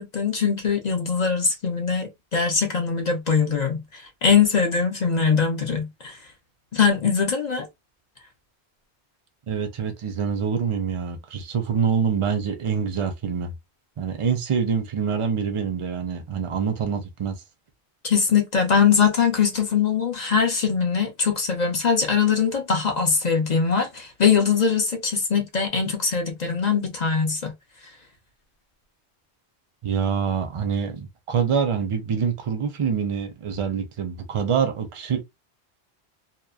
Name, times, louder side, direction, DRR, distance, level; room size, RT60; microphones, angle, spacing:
voice 1, 0.0-6.2 6.7-7.7 18.0-27.5, left 6 dB, 50° left, 0.6 m, -22 dB
voice 2, 9.5-13.5 14.0-17.4 29.8-35.2, right 6 dB, 40° right, 0.5 m, -25 dB
2.9 x 2.1 x 2.3 m
omnidirectional pair, 1.1 m